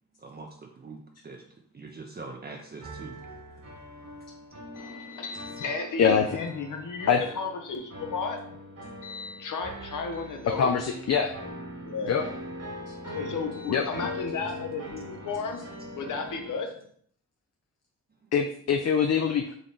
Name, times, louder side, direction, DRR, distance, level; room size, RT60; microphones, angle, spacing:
voice 1, 0.2-3.6 18.2-18.3, right 3 dB, 30° right, 1 dB, 0.6 m, -44 dB
sound 1, 2.8-16.5, left 1 dB, 50° right, 1.6 m, -41 dB
voice 2, 4.7-8.6 9.0-10.7 11.8-12.2 13.1-16.7, left 4 dB, 70° left, 4 dB, 1.0 m, -34 dB
voice 3, 10.6-11.4 12.1-12.2 13.7-13.8 18.3-19.5, left 6 dB, 50° left, 4 dB, 0.5 m, -23 dB
4.0 x 3.1 x 4.0 m, 0.62 s
cardioid pair, 65°, 32 cm